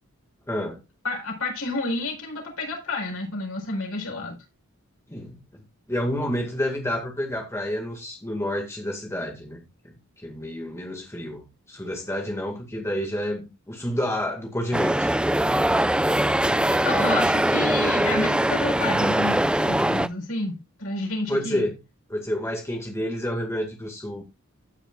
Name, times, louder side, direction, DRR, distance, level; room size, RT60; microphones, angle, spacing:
voice 1, 0.5-0.8 5.1-5.6 5.9-15.1 21.3-21.8 22.1-24.2, equal, 15° left, 2.0 m, -29 dB
voice 2, 1.0-4.4 16.7-21.7, left 2 dB, 85° left, 4.8 m, -30 dB
sound 1, 14.7-20.1, right 1 dB, 5° right, 0.4 m, -22 dB
15.5 x 6.9 x 2.5 m
head